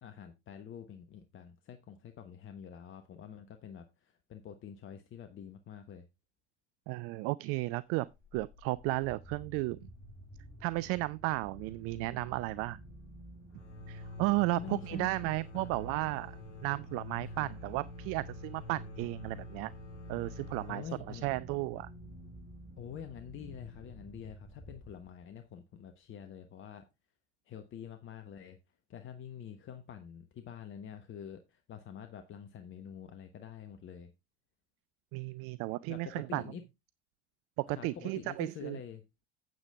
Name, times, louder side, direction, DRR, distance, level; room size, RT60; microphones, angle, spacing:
voice 1, 0.0-6.1 14.5-15.8 17.3-17.5 20.7-21.2 22.8-26.8 27.5-28.6 28.9-34.1 35.9-36.6 37.7-39.0, left 8 dB, 35° left, 1.1 m, -47 dB
voice 2, 6.9-8.1 8.3-9.8 10.6-12.8 13.9-19.7 20.1-21.9 35.1-36.4 37.6-38.8, right 21 dB, 40° right, 0.4 m, -34 dB
sound 1, 8.1-25.3, right 1 dB, 5° left, 5.9 m, -51 dB
sound 2, 13.5-23.0, left 2 dB, 85° left, 2.4 m, -48 dB
9.1 x 8.3 x 3.5 m
figure-of-eight pair, 70°, 35 cm